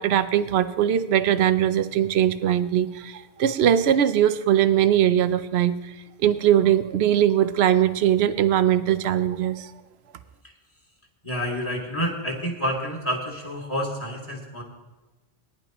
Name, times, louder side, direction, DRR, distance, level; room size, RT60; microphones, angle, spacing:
voice 1, 0.0-5.9 6.2-9.7, right 10 dB, 75° right, 13 dB, 0.9 m, -21 dB
voice 2, 11.2-14.6, equal, 25° left, -2 dB, 2.2 m, -29 dB
20.5 x 10.5 x 3.0 m, 1.2 s
omnidirectional pair, 1.1 m